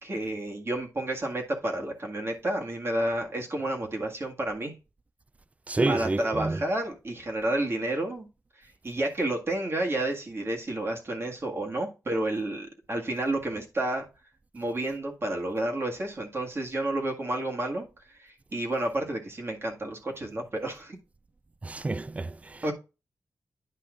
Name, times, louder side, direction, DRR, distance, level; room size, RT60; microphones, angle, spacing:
voice 1, 0.0-4.7 5.9-8.3 8.8-14.1 14.5-21.0 22.6-22.7, right 1 dB, 45° right, 1.9 m, -30 dB
voice 2, 5.7-6.6 21.6-22.6, right 2 dB, 25° right, 0.3 m, -29 dB
10.0 x 5.4 x 2.5 m
wide cardioid pair, 85°, 6 cm